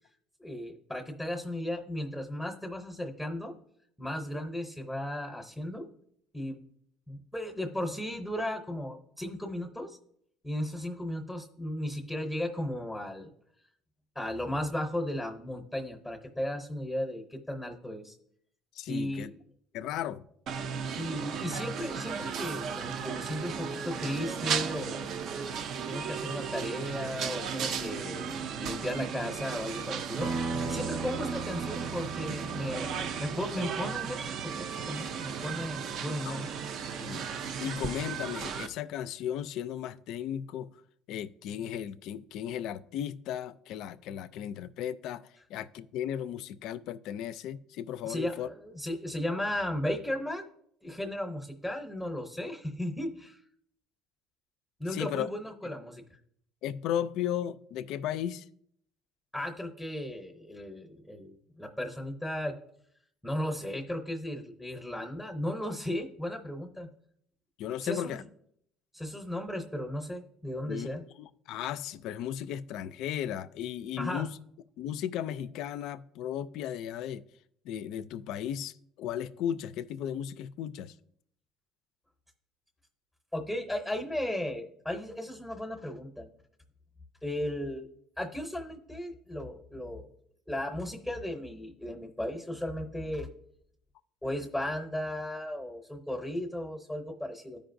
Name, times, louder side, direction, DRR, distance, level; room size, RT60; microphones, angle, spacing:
voice 1, 0.4-3.5 4.0-5.9 6.3-6.6 7.1-10.0 10.4-13.3 14.1-18.1 18.9-19.4 21.0-25.1 25.9-36.5 48.0-50.4 50.8-53.4 54.8-56.0 59.3-62.5 63.2-66.9 67.8-68.2 68.9-71.0 74.0-74.2 83.3-86.3 87.2-87.9 88.2-90.1 90.5-93.3 94.2-97.6, left 1 dB, ahead, 0.7 m, -35 dB
voice 2, 18.7-19.3 19.7-20.2 36.3-36.4 36.9-40.7 41.1-48.5 54.9-55.3 55.6-55.7 56.6-58.5 67.6-68.2 70.6-70.9 71.2-74.4 74.8-77.2 77.6-80.9, left 10 dB, 60° left, 0.3 m, -35 dB
sound 1, 20.5-38.7, right 7 dB, 50° right, 0.5 m, -35 dB
sound 2, 30.2-35.3, right 4 dB, 85° right, 1.0 m, -38 dB
13.5 x 5.1 x 2.6 m
cardioid pair, 155°, 0 cm